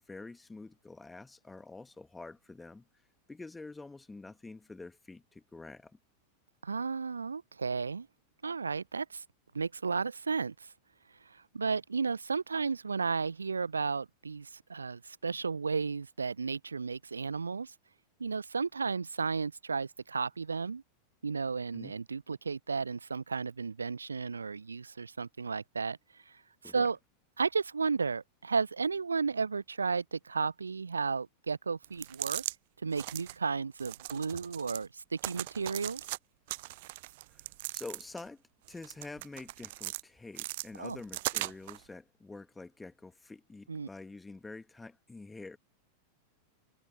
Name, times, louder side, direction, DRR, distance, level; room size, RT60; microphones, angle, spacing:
voice 1, 0.0-2.8 3.3-6.0 21.7-22.0 26.6-26.9 37.3-37.4 37.7-38.4 38.7-45.6, left 3 dB, 10° left, 1.5 m, -47 dB
voice 2, 6.6-8.1 8.4-9.2 9.5-10.7 11.5-17.7 18.2-20.8 21.2-26.0 26.3-26.4 26.6-27.0 27.4-32.4 32.8-36.0 40.8-41.0 43.7-43.9, right 5 dB, 75° right, 0.7 m, -33 dB
sound 1, 31.8-32.6 32.9-33.4 33.8-34.9 35.2-36.2 36.5-38.3 38.7-40.0 40.4-41.8, right 20 dB, 50° right, 0.4 m, -39 dB
figure-of-eight pair, 90°, 0 cm